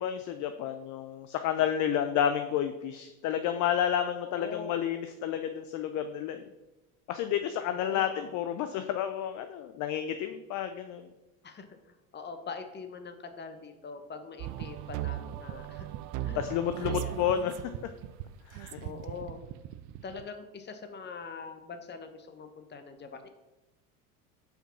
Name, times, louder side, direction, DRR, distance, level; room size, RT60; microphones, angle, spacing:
voice 1, 0.0-6.5 7.1-11.1 16.3-17.6 18.5-18.8, left 9 dB, 45° left, 8 dB, 0.6 m, -30 dB
voice 2, 4.2-4.7 7.7-8.5 11.4-15.9 16.2-16.4 16.8-17.2 18.8-19.4 20.0-23.3, left 4 dB, 25° left, 7 dB, 1.0 m, -43 dB
sound 1, 14.4-20.2, right 13 dB, 45° right, 0.5 m, -38 dB
5.3 x 5.0 x 5.6 m, 1.0 s
hypercardioid pair, 75°, 43 cm